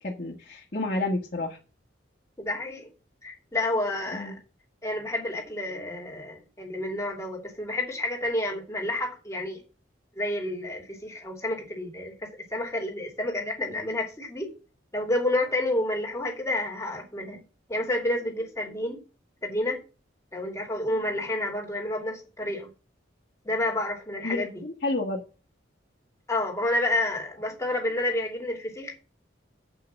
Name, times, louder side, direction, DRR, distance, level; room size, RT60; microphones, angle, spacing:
voice 1, 0.0-1.6 4.1-4.4 24.2-25.2, left 2 dB, 45° left, 1.8 m, -30 dB
voice 2, 2.4-2.9 3.2-4.3 4.8-9.6 10.2-14.5 14.9-17.4 17.7-19.0 19.4-19.8 20.3-22.7 23.4-24.6 26.3-28.9, left 1 dB, 15° left, 2.8 m, -29 dB
7.9 x 5.8 x 7.3 m
head